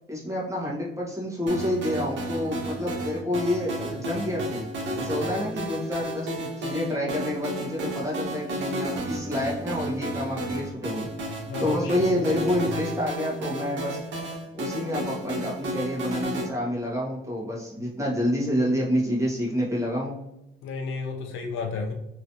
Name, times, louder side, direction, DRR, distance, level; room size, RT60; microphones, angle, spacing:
voice 1, 0.1-4.7 4.9-11.1 11.6-14.0 14.5-20.2, left 1 dB, 15° right, -4 dB, 1.4 m, -28 dB
sound 1, 1.5-16.5, right 1 dB, 65° right, 1.1 m, -32 dB
voice 2, 11.5-12.7 17.8-17.9 20.6-21.9, left 4 dB, 85° left, 3 dB, 0.7 m, -33 dB
3.0 x 3.0 x 2.8 m, 0.86 s
cardioid pair, 90°, 20 cm